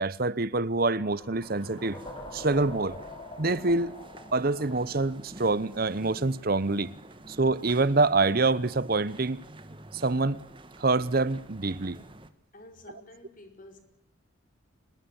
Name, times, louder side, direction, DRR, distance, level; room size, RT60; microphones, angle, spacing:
voice 1, 0.0-2.0 2.3-3.0 3.4-3.9 4.3-6.9 7.3-9.4 9.9-10.4 10.8-12.0, right 3 dB, 45° right, 0.9 m, -26 dB
sound 1, 1.0-6.0, left 2 dB, 25° left, 6.7 m, -45 dB
sound 2, 1.4-12.3, right 1 dB, 25° right, 1.7 m, -49 dB
voice 2, 12.5-13.8, left 1 dB, 40° left, 4.9 m, -50 dB
25.5 x 21.0 x 7.1 m
head